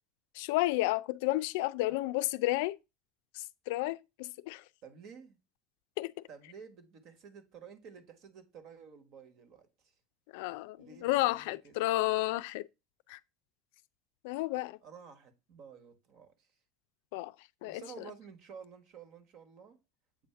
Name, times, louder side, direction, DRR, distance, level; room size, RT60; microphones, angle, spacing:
voice 1, 0.3-2.8 3.3-4.6 6.0-6.1 10.3-12.7 13.1-13.2 14.2-14.8 17.1-17.3 17.6-17.8, left 18 dB, 80° left, 0.4 m, -31 dB
voice 2, 4.8-5.4 6.3-9.9 10.8-11.8 14.8-16.5 17.6-19.8, right 6 dB, 55° right, 1.4 m, -52 dB
7.7 x 2.7 x 5.7 m
supercardioid pair, 110°, 0 cm